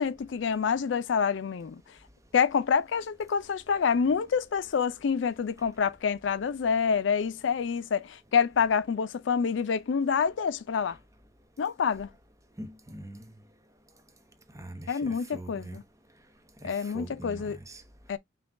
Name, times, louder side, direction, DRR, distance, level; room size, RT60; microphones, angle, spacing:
voice 1, 0.0-1.8 2.3-11.0 11.6-12.1 14.9-15.8 16.6-17.6 18.1-18.2, left 6 dB, 75° left, 0.4 m, -27 dB
voice 2, 12.6-13.3 14.5-15.8 16.7-17.8, right 1 dB, 15° right, 0.8 m, -43 dB
5.7 x 2.3 x 3.6 m
head